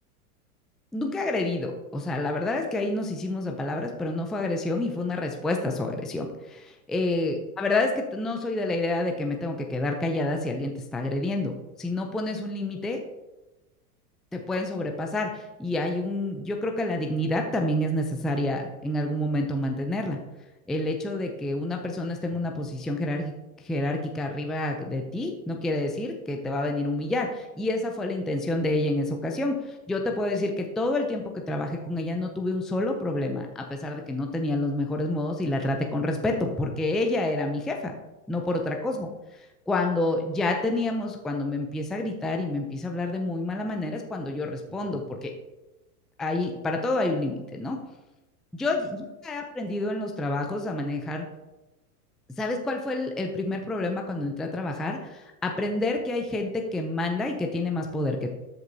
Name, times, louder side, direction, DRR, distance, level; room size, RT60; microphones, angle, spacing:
voice 1, 0.9-13.0 14.3-20.2 20.7-23.3 23.6-37.9 38.3-45.3 46.2-47.8 48.5-51.3 52.4-58.3, left 2 dB, ahead, 3 dB, 0.4 m, -28 dB
13.0 x 5.2 x 2.7 m, 1.0 s
hypercardioid pair, 110°, 45 cm